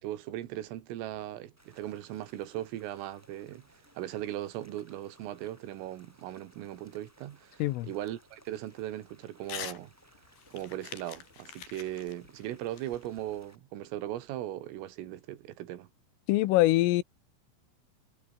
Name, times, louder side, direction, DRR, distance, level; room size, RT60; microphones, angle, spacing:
voice 1, 0.0-3.6 4.0-7.6 7.9-9.9 10.5-15.9, right 13 dB, 85° right, 4.4 m, -38 dB
sound 1, 1.6-13.6, equal, 5° right, 6.9 m, -62 dB
Crumpling crinkling / Tearing, 9.4-9.8 10.1-13.5, left 10 dB, 60° left, 4.1 m, -44 dB
voice 2, 16.3-17.0, left 17 dB, 85° left, 3.7 m, -24 dB
omnidirectional pair, 5.7 m